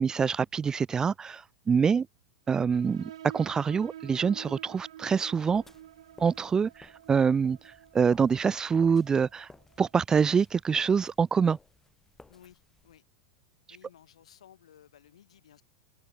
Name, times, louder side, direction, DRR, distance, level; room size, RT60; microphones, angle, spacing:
voice 1, 0.0-2.1 2.5-5.6 6.2-9.5 9.8-11.6, right 6 dB, 20° right, 0.5 m, -25 dB
sound 1, 2.7-10.0, right 12 dB, 70° right, 1.2 m, -49 dB
sound 2, 5.5-12.9, left 3 dB, 10° left, 4.0 m, -57 dB
voice 2, 12.3-13.0 13.7-15.6, left 10 dB, 70° left, 6.4 m, -57 dB
figure-of-eight pair, 90°, 3 cm